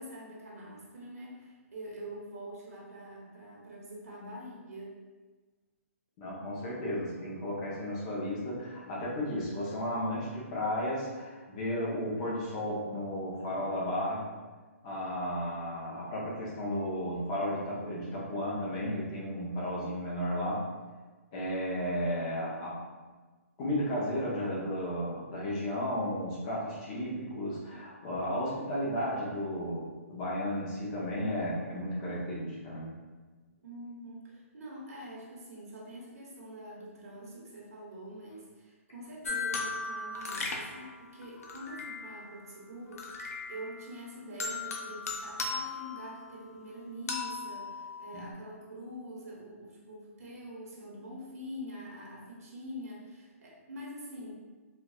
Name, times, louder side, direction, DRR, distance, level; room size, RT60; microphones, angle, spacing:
voice 1, 0.0-4.9 33.6-54.3, equal, 85° right, -4 dB, 1.2 m, -45 dB
voice 2, 6.2-14.2 14.8-20.6 21.3-22.8 23.6-32.9 48.1-48.2, equal, 20° left, -6 dB, 0.6 m, -34 dB
sound 1, 39.2-42.3 42.9-43.9 44.4-46.6 47.1-48.3, left 3 dB, 80° left, 0.6 m, -37 dB
4.4 x 2.3 x 2.3 m, 1.3 s
hypercardioid pair, 170°, 8 cm